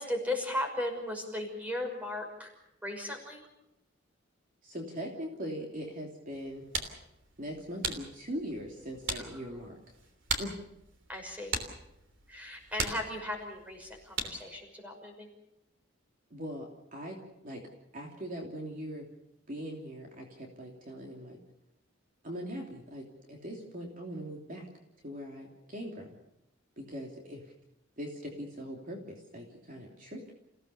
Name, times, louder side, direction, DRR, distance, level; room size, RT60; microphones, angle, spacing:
voice 1, 0.0-2.5 2.8-3.4 9.2-9.6 11.1-11.5 12.3-15.3, left 1 dB, 10° right, 2 dB, 5.9 m, -36 dB
voice 2, 4.6-6.7 7.4-9.8 10.4-10.6 16.3-17.2 17.4-17.6 17.9-19.1 19.5-21.4 22.2-24.7 25.0-26.1 26.8-27.5 28.0-30.3, equal, 45° right, 0 dB, 3.0 m, -41 dB
sound 1, 6.3-14.6, right 4 dB, 70° right, 3.2 m, -40 dB
29.0 x 17.0 x 6.9 m, 0.84 s
head